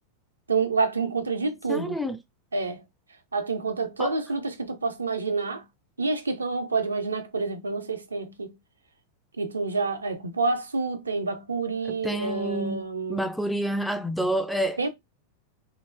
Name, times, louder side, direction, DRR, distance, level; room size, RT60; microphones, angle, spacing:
voice 1, 0.5-2.0 2.5-2.8 3.3-5.6 6.0-8.5 9.4-13.2 14.8-14.9, right 4 dB, 75° right, 0.5 m, -28 dB
voice 2, 1.7-2.2 4.0-4.2 11.9-14.9, right 1 dB, ahead, 0.3 m, -29 dB
3.0 x 2.0 x 2.4 m
figure-of-eight pair, 90°, 0 cm